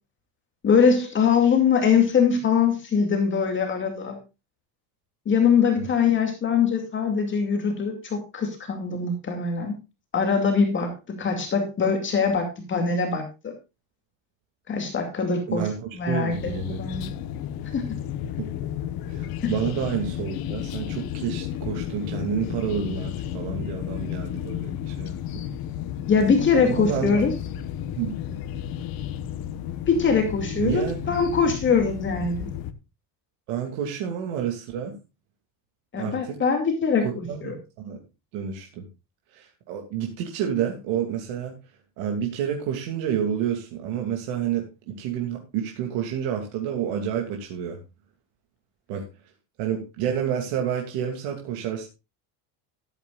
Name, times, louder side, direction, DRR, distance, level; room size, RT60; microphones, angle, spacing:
voice 1, 0.6-4.2 5.3-9.7 10.1-13.5 14.7-15.6 16.0-16.5 16.8-17.1 17.7-17.8 26.1-27.3 29.9-32.5 35.9-37.6, left 6 dB, 25° left, 4 dB, 2.4 m, -22 dB
voice 2, 15.5-16.8 18.4-18.5 19.1-25.4 26.6-27.2 27.5-27.6 28.0-28.1 30.5-31.2 33.5-34.9 35.9-36.4 37.0-38.0 38.3-38.9 39.3-41.6 42.0-47.8 48.9-49.1 49.6-51.9, right 8 dB, 80° right, 2 dB, 2.8 m, -29 dB
sound 1, 16.3-32.7, left 10 dB, 50° left, 1.3 m, -32 dB
14.0 x 12.5 x 2.5 m, 0.27 s
cardioid pair, 180°, 45 cm